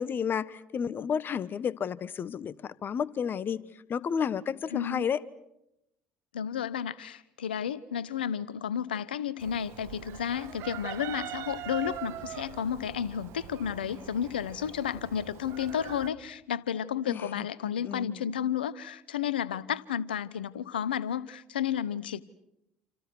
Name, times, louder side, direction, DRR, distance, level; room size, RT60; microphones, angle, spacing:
voice 1, 0.0-3.6 3.9-5.2 17.1-18.3, left 7 dB, 40° left, 1.4 m, -32 dB
voice 2, 4.7-5.1 6.3-22.2, left 9 dB, 85° left, 1.0 m, -32 dB
Chicken rooster, 9.4-16.1, right 13 dB, 60° right, 2.1 m, -42 dB
29.0 x 28.5 x 6.2 m
hypercardioid pair, 60°, 5 cm